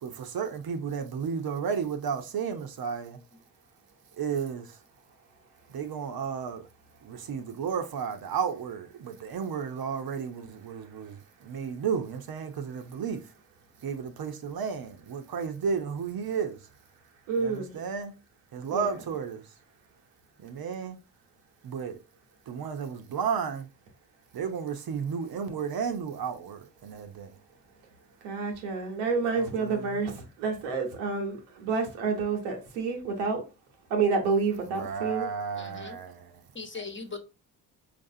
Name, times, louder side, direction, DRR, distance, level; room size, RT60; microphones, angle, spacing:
voice 1, 0.0-3.2 4.2-4.8 5.7-6.7 7.0-13.2 13.8-16.6 17.4-18.1 18.5-19.5 20.4-21.0 21.6-22.0 22.5-23.7 24.3-27.3 29.4-30.0 34.7-36.5, right 6 dB, 55° right, 0.8 m, -33 dB
voice 2, 17.3-17.7 18.7-18.9 28.2-33.4 33.9-35.3, right 4 dB, 90° right, 1.0 m, -29 dB
voice 3, 35.6-36.0 36.5-37.2, left 4 dB, 25° left, 1.1 m, -39 dB
4.6 x 2.5 x 2.6 m
hypercardioid pair, 45°, 45 cm